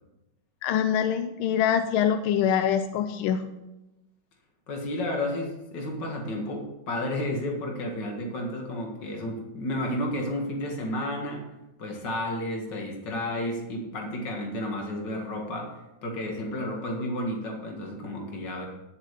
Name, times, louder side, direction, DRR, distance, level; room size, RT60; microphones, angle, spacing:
voice 1, 0.6-3.5, left 9 dB, 90° left, 9 dB, 1.5 m, -24 dB
voice 2, 4.7-11.4 11.8-15.7 16.0-18.7, left 1 dB, 60° left, 0 dB, 2.5 m, -32 dB
11.0 x 7.3 x 5.2 m, 0.97 s
omnidirectional pair, 2.2 m